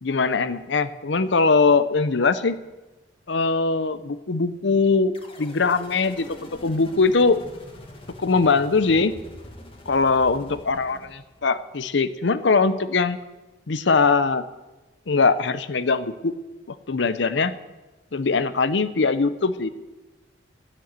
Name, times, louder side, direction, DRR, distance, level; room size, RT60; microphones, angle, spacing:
voice 1, 0.0-2.6 3.3-7.4 8.2-9.1 9.9-13.2 13.7-14.4 15.1-16.3 16.9-17.5 18.1-19.7, left 4 dB, 70° left, 13 dB, 0.7 m, -21 dB
sound 1, 5.1-11.6, left 1 dB, 30° left, 1.7 m, -44 dB
13.5 x 7.7 x 8.1 m, 1.1 s
head